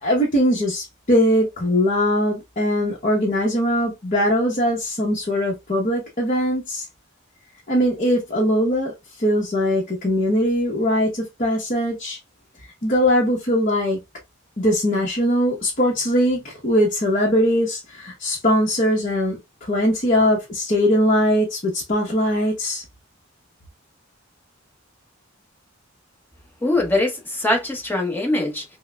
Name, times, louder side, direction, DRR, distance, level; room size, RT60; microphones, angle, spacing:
voice 1, 0.0-6.8 7.7-8.9 9.2-12.2 12.8-14.0 14.6-19.4 19.7-22.8, equal, 40° left, 1.0 m, -21 dB
voice 2, 26.6-28.6, left 2 dB, 10° left, 1.1 m, -22 dB
5.6 x 2.2 x 2.3 m
head